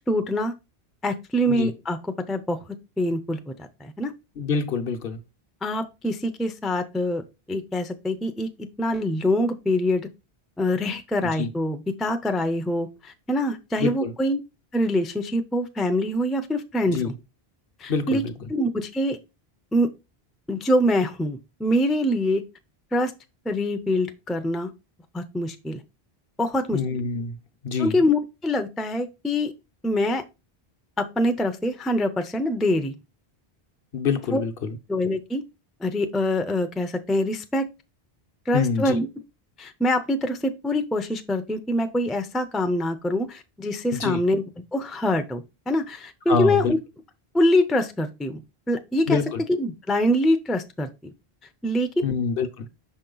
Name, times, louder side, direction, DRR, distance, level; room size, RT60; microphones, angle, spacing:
voice 1, 0.1-0.5 1.0-2.0 2.3-2.6 3.0-4.1 5.6-7.2 7.5-10.1 10.6-14.4 14.7-17.1 17.8-18.2 18.5-19.2 19.7-19.9 20.5-22.4 22.9-23.1 23.5-24.7 25.1-25.8 26.4-26.8 27.8-29.5 29.8-30.2 31.0-32.9 34.3-34.4 34.9-35.4 35.8-37.7 38.5-39.1 39.6-44.4 44.7-46.8 47.3-48.4 48.7-49.2 49.5-51.1 51.6-51.9, left 1 dB, ahead, 0.4 m, -24 dB
voice 2, 4.4-5.2 11.4-11.5 13.8-14.1 16.9-17.1 17.9-18.3 26.7-27.4 27.6-28.0 33.9-34.8 38.5-39.0 43.9-44.2 46.3-46.7 49.1-49.4 52.0-52.7, left 5 dB, 65° left, 1.0 m, -26 dB
6.2 x 4.3 x 3.8 m
omnidirectional pair, 1.0 m